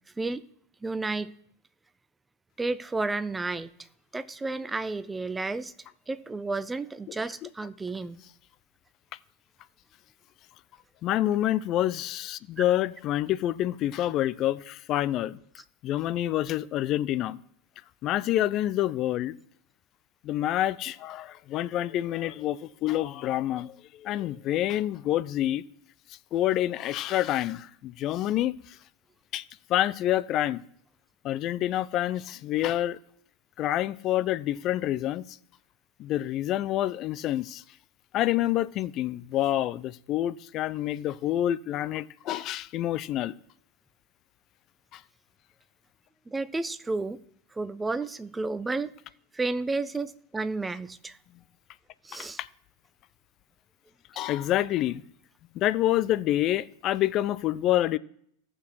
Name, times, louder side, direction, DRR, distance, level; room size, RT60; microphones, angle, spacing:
voice 1, 0.8-1.3 2.6-3.7 4.1-5.7 6.1-8.2 46.3-47.2 47.5-48.9 49.3-51.2 52.0-52.4 54.1-54.2, right 3 dB, 10° right, 0.6 m, -31 dB
voice 2, 11.0-15.4 15.8-17.4 18.0-19.4 20.2-25.6 26.3-28.8 29.3-30.6 31.2-33.0 33.6-35.4 36.0-37.6 38.1-43.3 44.9-45.0 52.4-52.5 54.2-55.0 55.5-58.0, left 13 dB, 40° left, 0.5 m, -27 dB
14.0 x 6.3 x 4.6 m
figure-of-eight pair, 85°, 0 cm